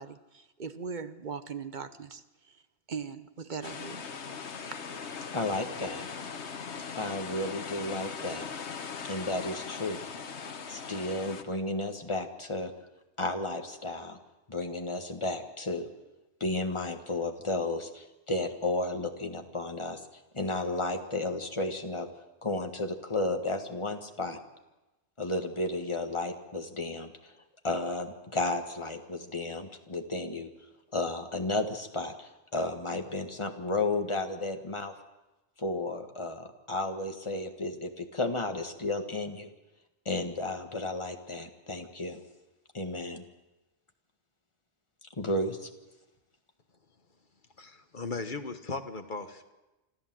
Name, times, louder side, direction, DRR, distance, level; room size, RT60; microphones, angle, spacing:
voice 1, 0.0-2.6 2.9-4.0, right 5 dB, 45° right, 11 dB, 1.0 m, -40 dB
sound 1, 3.6-11.4, left 6 dB, 80° left, 1.4 m, -40 dB
voice 2, 5.3-6.1 7.0-8.5 9.0-10.1 10.7-12.7 13.2-14.2 14.5-15.9 16.4-20.0 20.3-22.1 22.4-24.4 25.2-27.4 27.6-30.5 30.9-34.9 35.6-39.5 40.1-42.2 42.7-43.2 45.2-45.7, left 2 dB, 25° left, 5 dB, 1.6 m, -33 dB
voice 3, 47.6-49.5, left 3 dB, 45° left, 8 dB, 1.4 m, -37 dB
26.5 x 13.5 x 7.7 m, 1.0 s
omnidirectional pair, 1.1 m